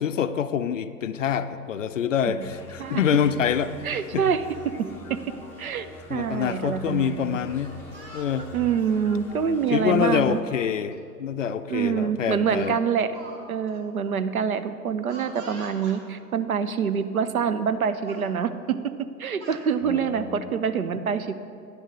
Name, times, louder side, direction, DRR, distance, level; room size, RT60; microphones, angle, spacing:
voice 1, 0.0-3.7 4.1-4.3 6.1-7.7 8.1-8.5 9.7-12.8 19.8-20.5, left 8 dB, 55° left, 11 dB, 0.5 m, -26 dB
sound 1, 2.4-10.4, left 2 dB, 5° left, 0.7 m, -44 dB
voice 2, 3.8-4.4 4.8-5.2 5.6-7.4 8.5-10.4 11.7-13.1 13.5-18.8 19.2-21.3, right 7 dB, 65° right, 11 dB, 0.7 m, -26 dB
Speech, 7.4-8.5 9.4-9.7 10.9-11.0 11.4-11.6 12.6-13.4 13.7-13.8 15.1-16.0 16.9-17.0 17.4-17.7 18.0-18.3 19.1-19.6, right 2 dB, 20° right, 1.4 m, -45 dB
10.0 x 6.4 x 6.1 m, 2.4 s
figure-of-eight pair, 110°, 47 cm